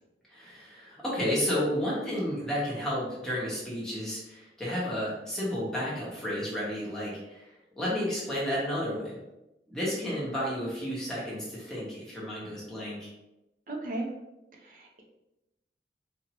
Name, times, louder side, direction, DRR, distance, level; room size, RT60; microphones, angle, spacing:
voice 1, 0.3-9.2 9.7-13.1, equal, 5° left, -8 dB, 1.3 m, -32 dB
voice 2, 13.7-14.1 14.5-15.0, right 2 dB, 50° right, 1 dB, 0.7 m, -36 dB
4.4 x 2.8 x 3.0 m, 0.93 s
head